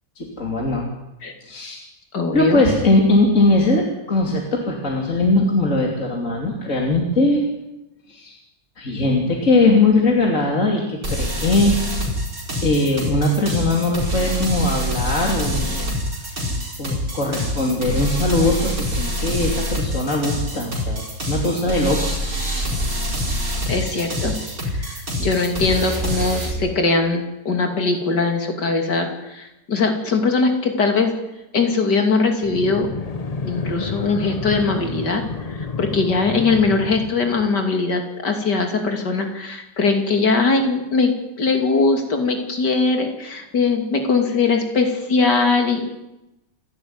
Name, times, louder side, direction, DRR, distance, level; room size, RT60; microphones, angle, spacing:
voice 1, 0.2-0.8 1.4-1.8 2.3-7.4 8.1-8.4 8.8-11.8 12.6-15.9 16.3-16.4 16.8-22.0 25.1-25.2, left 2 dB, 45° left, 0 dB, 3.4 m, -20 dB
voice 2, 2.1-2.6 23.7-24.4 24.7-31.1 31.5-32.9 33.5-35.2 35.5-41.1 41.4-45.9, left 4 dB, 70° left, 4 dB, 3.4 m, -21 dB
sound 1, 11.0-26.5, equal, 55° right, 5.3 m, -25 dB
sound 2, 32.4-37.7, left 4 dB, 30° left, 0.8 m, -30 dB
28.5 x 12.0 x 9.7 m, 0.95 s
omnidirectional pair, 1.9 m